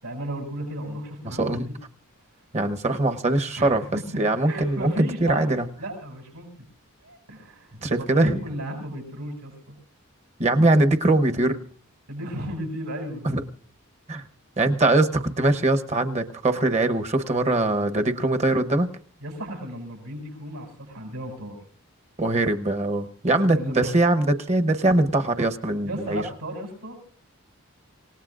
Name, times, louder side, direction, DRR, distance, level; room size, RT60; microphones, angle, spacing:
voice 1, 0.0-1.7 3.5-3.9 4.4-6.7 7.0-9.7 12.1-13.3 19.2-21.6 23.3-24.0 25.8-27.0, right 1 dB, 85° right, 1 dB, 7.3 m, -35 dB
voice 2, 1.2-1.7 2.5-3.8 4.1-5.7 7.8-8.4 10.4-11.6 13.2-13.4 14.1-14.2 14.6-18.9 22.2-26.2, right 2 dB, 30° right, 8 dB, 0.9 m, -22 dB
27.0 x 18.0 x 2.5 m, 0.44 s
head